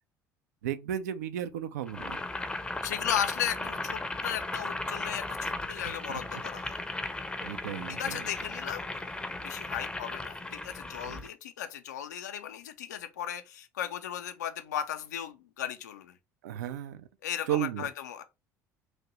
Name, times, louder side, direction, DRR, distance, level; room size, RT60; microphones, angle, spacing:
voice 1, 0.6-2.2 6.1-6.2 7.4-8.2 11.1-11.2 16.4-17.1 17.5-17.9, right 11 dB, 70° right, 0.4 m, -34 dB
Boiling, 1.9-11.3, left 2 dB, 10° left, 0.5 m, -36 dB
voice 2, 2.8-6.8 7.9-9.1 9.4-16.2 17.2-18.2, left 10 dB, 75° left, 0.4 m, -36 dB
3.1 x 2.5 x 2.9 m
figure-of-eight pair, 60°, 9 cm